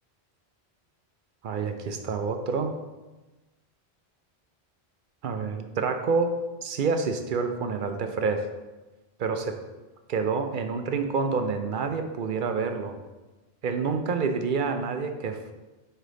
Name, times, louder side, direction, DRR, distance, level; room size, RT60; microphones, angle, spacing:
voice 1, 1.4-2.7 5.2-6.3 6.6-8.4 9.2-9.6 10.1-13.0 13.6-15.5, right 5 dB, 60° right, 6 dB, 0.6 m, -28 dB
5.5 x 3.9 x 4.9 m, 1.1 s
omnidirectional pair, 1.1 m